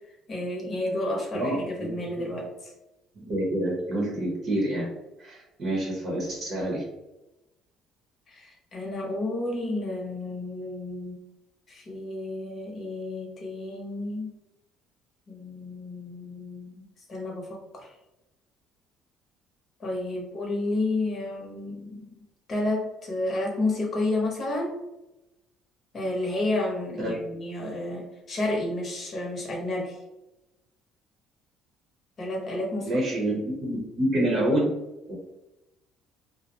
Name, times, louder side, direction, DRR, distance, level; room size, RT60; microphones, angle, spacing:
voice 1, 0.3-2.5 8.3-11.2 11.7-14.3 15.3-16.8 17.1-17.9 19.8-22.1 22.5-24.8 25.9-30.0 32.2-33.0, left 2 dB, 40° left, -1 dB, 0.8 m, -31 dB
voice 2, 1.3-1.9 2.2-2.3 3.2-4.9 5.2-6.8 27.0-27.1 32.8-34.7 35.1-35.2, right 1 dB, 50° right, -3 dB, 0.8 m, -27 dB
2.4 x 2.0 x 2.8 m, 0.96 s
cardioid pair, 115°, 0 cm